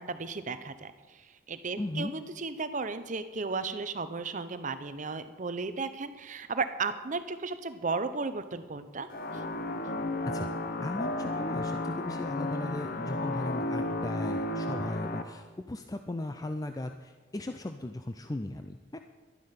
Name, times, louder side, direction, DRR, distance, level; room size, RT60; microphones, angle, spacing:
voice 1, 0.0-9.1 9.3-9.4, right 4 dB, 40° right, 11 dB, 0.7 m, -35 dB
voice 2, 1.8-2.1 10.3-10.5 10.8-19.0, left 1 dB, 20° left, 7 dB, 0.4 m, -37 dB
sound 1, 9.1-15.2, left 2 dB, 50° left, 0.8 m, -33 dB
12.0 x 11.0 x 5.7 m, 1.3 s
head